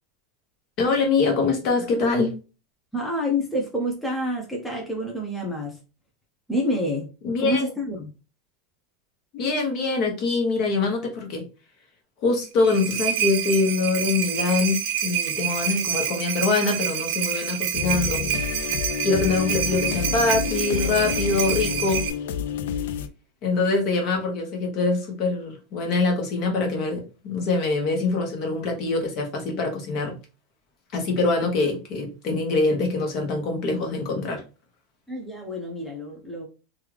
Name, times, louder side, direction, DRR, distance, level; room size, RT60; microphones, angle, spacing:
voice 1, 0.8-2.3 7.2-7.7 9.3-11.4 12.2-18.3 19.0-22.0 23.4-30.2 30.9-34.4, left 3 dB, 45° left, 1.1 m, -24 dB
voice 2, 2.9-5.8 6.5-7.1 7.4-8.1 35.1-36.5, left 1 dB, 5° left, 0.6 m, -28 dB
sound 1, 12.4-22.1, right 10 dB, 65° right, 0.6 m, -28 dB
sound 2, 17.7-23.1, left 8 dB, 75° left, 0.3 m, -29 dB
3.3 x 2.4 x 3.2 m
supercardioid pair, 160°, 0 cm